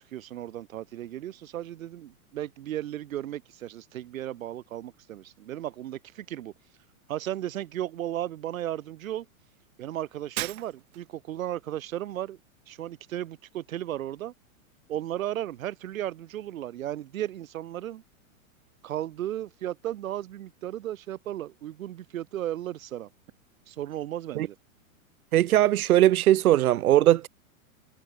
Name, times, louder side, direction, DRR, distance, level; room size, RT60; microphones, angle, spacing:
voice 1, 0.0-6.5 7.1-9.3 9.8-12.4 12.7-14.3 14.9-18.0 18.8-23.1 23.7-24.6, right 12 dB, 70° right, 4.2 m, -35 dB
Shatter, 10.4-11.2, right 19 dB, 45° right, 2.6 m, -35 dB
voice 2, 25.3-27.3, right 13 dB, 90° right, 0.9 m, -20 dB
supercardioid pair, 160°, 42 cm